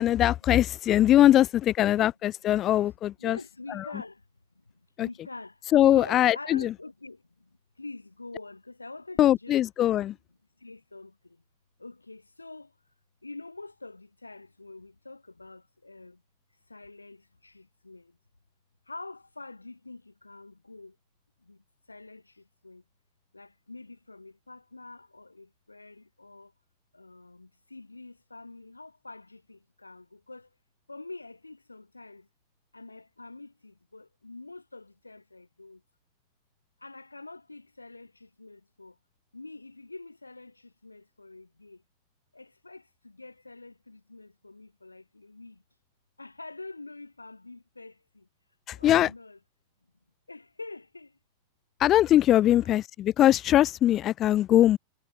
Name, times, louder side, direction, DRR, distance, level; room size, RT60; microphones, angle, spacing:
voice 1, 0.0-3.4 3.7-3.8 5.0-5.1 5.7-6.7 9.2-10.1 48.7-49.1 51.8-54.8, left 12 dB, 30° left, 0.7 m, -21 dB
voice 2, 3.2-4.3 4.5-9.6 10.6-11.4 11.8-12.7 13.2-16.2 16.7-18.2 18.9-21.0 21.4-22.8 23.3-26.5 26.9-30.5 30.9-32.3 32.7-35.8 36.8-39.0 39.3-41.8 42.3-45.6 46.2-48.3 48.8-49.4 50.3-51.2 52.4-52.6, left 3 dB, 80° left, 2.1 m, -46 dB
figure-of-eight pair, 90°, 0 cm